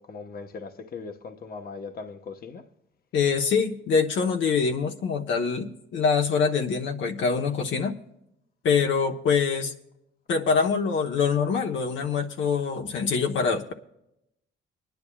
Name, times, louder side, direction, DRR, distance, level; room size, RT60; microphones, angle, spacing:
voice 1, 0.0-2.6, left 4 dB, 50° left, 1.1 m, -39 dB
voice 2, 3.1-7.9 8.6-9.7 10.3-13.7, left 5 dB, 70° left, 1.1 m, -24 dB
25.0 x 10.5 x 2.3 m
cardioid pair, 90°, 20 cm